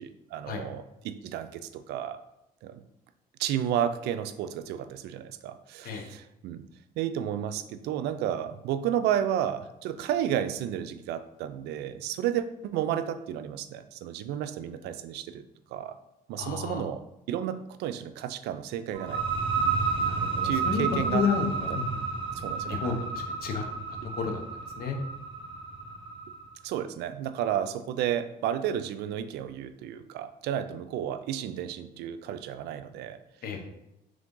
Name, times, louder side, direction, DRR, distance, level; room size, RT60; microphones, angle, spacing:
voice 1, 0.0-2.2 2.6-2.8 3.4-6.6 7.0-15.4 15.7-16.0 16.3-17.0 17.3-19.2 20.4-21.2 21.7-21.8 22.3-23.0 26.6-33.2, right 10 dB, 80° right, 10 dB, 0.4 m, -32 dB
voice 2, 16.4-16.9 20.0-20.8 21.1-22.0 22.7-23.6 24.2-24.4 24.8-25.0 33.4-33.6, left 6 dB, 60° left, 4 dB, 0.8 m, -31 dB
sound 1, 18.9-26.4, right 4 dB, 30° right, 0.8 m, -31 dB
3.8 x 3.3 x 3.7 m, 0.90 s
cardioid pair, 110°, 17 cm